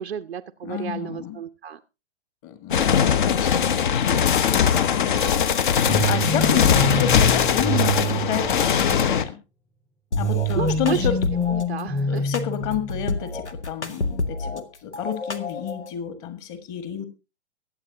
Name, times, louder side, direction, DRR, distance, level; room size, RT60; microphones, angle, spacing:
voice 1, 0.0-1.8 10.6-11.1 11.5-12.3, right 8 dB, 70° right, 7 dB, 0.7 m, -31 dB
voice 2, 0.6-1.4 2.4-5.8 6.1-9.3 10.1-11.1 12.1-17.0, left 9 dB, 30° left, 10 dB, 1.7 m, -30 dB
sound 1, 2.7-9.2, left 7 dB, 45° left, 1.0 m, -20 dB
sound 2, 5.9-9.0 10.1-13.1, right 1 dB, 5° left, 0.8 m, -26 dB
sound 3, 10.1-11.7 12.3-14.6 14.9-15.9, left 3 dB, 80° left, 1.1 m, -29 dB
22.5 x 7.8 x 2.8 m, 0.28 s
figure-of-eight pair, 115°, 33 cm